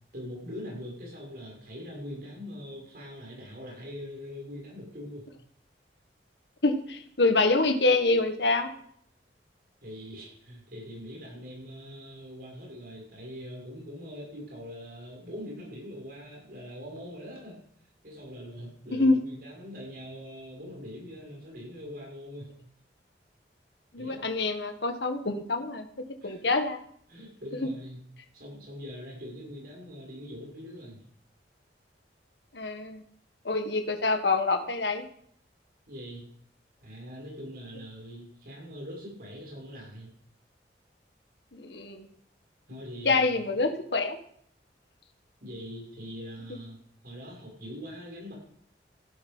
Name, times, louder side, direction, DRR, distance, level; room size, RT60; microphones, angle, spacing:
voice 1, 0.1-5.3 9.8-17.6 18.0-22.5 24.0-24.2 26.2-26.4 27.1-28.0 28.3-31.0 35.9-36.2 36.8-40.1 42.7-43.3 45.4-46.8 47.0-48.3, equal, 55° right, -2 dB, 7.0 m, -42 dB
voice 2, 6.6-8.7 19.0-19.2 23.9-25.9 26.2-26.8 27.6-27.7 32.5-33.0 33.4-35.0 41.5-42.1 43.0-44.2 46.5-46.6, left 3 dB, 75° left, 6 dB, 1.7 m, -26 dB
15.5 x 12.5 x 5.6 m, 0.64 s
head